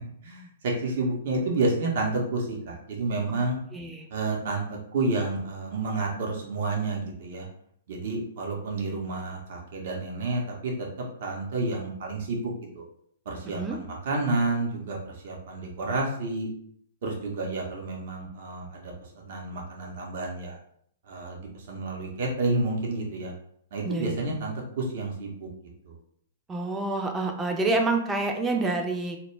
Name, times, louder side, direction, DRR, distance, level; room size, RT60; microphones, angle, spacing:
voice 1, 0.2-3.6 4.1-4.6 4.9-7.5 7.9-10.9 11.2-12.8 13.3-16.5 17.0-18.9 19.3-20.6 21.1-23.3 23.7-25.5 25.9-26.0, right 2 dB, 55° right, -1 dB, 0.6 m, -30 dB
voice 2, 3.7-4.1 13.5-13.8 23.8-24.2 26.5-29.2, right 2 dB, 15° right, 3 dB, 0.4 m, -27 dB
2.1 x 2.1 x 3.1 m, 0.67 s
hypercardioid pair, 120°, 0 cm